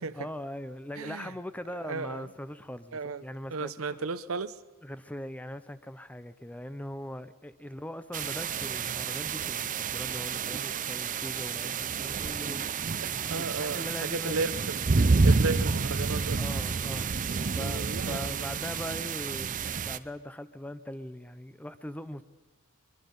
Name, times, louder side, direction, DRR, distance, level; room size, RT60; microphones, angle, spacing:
voice 1, 0.1-4.1 4.8-14.6 16.4-17.1 17.4-22.2, left 1 dB, 5° left, 0.6 m, -41 dB
voice 2, 1.0-1.3 1.8-2.3 2.9-3.2 3.5-4.6 13.0-14.8 15.2-16.4 17.6-18.6, right 4 dB, 70° right, 0.8 m, -34 dB
sound 1, 8.1-20.0, right 4 dB, 40° right, 0.6 m, -29 dB
23.0 x 22.5 x 5.4 m
head